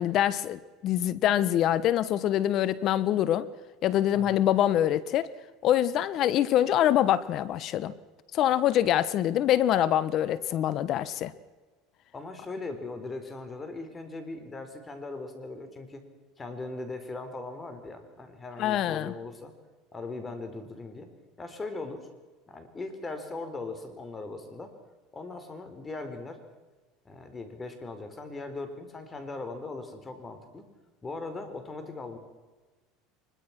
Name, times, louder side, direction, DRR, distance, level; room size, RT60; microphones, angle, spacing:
voice 1, 0.0-3.5 3.8-5.3 5.6-7.9 8.3-11.3 18.6-19.1, left 11 dB, 50° left, 1.1 m, -25 dB
voice 2, 12.1-16.0 16.4-19.5 19.9-21.1 21.4-22.1 22.5-24.7 25.1-26.4 27.0-30.7 31.0-32.2, left 3 dB, 20° left, 4.4 m, -39 dB
24.0 x 22.0 x 6.1 m
supercardioid pair, 115°, 0 cm